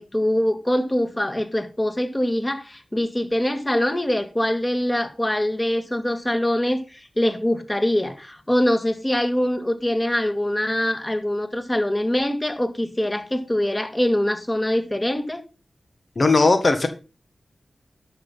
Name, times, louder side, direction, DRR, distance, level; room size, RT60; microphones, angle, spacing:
voice 1, 0.0-15.4, left 1 dB, 20° left, 2.2 m, -23 dB
voice 2, 16.2-16.9, left 3 dB, 60° left, 1.5 m, -17 dB
12.0 x 6.1 x 5.6 m
cardioid pair, 45°, 0 cm